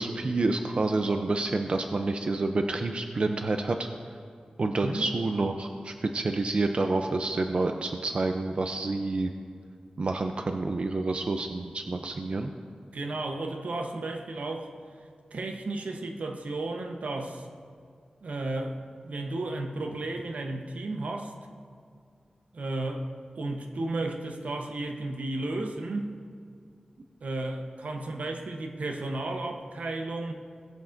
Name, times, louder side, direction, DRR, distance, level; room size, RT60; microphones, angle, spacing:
voice 1, 0.0-3.9 4.6-9.3 10.0-12.5, right 3 dB, 50° right, 5 dB, 0.5 m, -28 dB
voice 2, 4.8-5.1 12.9-14.7 15.3-17.5 18.2-21.3 22.5-26.2 27.2-30.3, right 2 dB, 75° right, 3 dB, 0.9 m, -33 dB
20.5 x 8.1 x 2.6 m, 2.3 s
wide cardioid pair, 105°, 2 cm